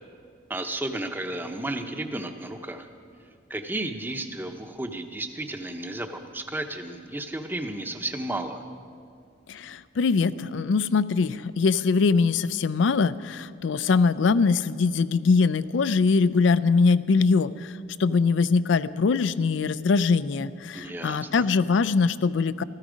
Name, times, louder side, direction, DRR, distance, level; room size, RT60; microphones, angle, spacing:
voice 1, 0.5-2.9 3.5-8.6 20.7-21.5, right 1 dB, 10° right, 6 dB, 0.7 m, -33 dB
voice 2, 9.5-17.5 18.0-22.6, left 4 dB, 70° left, 16 dB, 0.4 m, -22 dB
14.5 x 13.5 x 5.1 m, 2.2 s
head